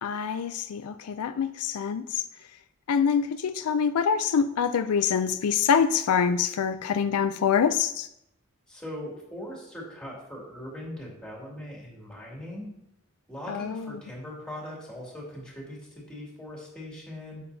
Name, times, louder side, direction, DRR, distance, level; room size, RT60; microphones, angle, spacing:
voice 1, 0.0-2.2 2.9-8.1 13.5-14.0, left 7 dB, 85° left, 11 dB, 0.4 m, -25 dB
voice 2, 8.7-12.7 13.3-17.4, left 1 dB, 5° left, -4 dB, 2.3 m, -40 dB
8.6 x 7.5 x 2.7 m, 0.79 s
head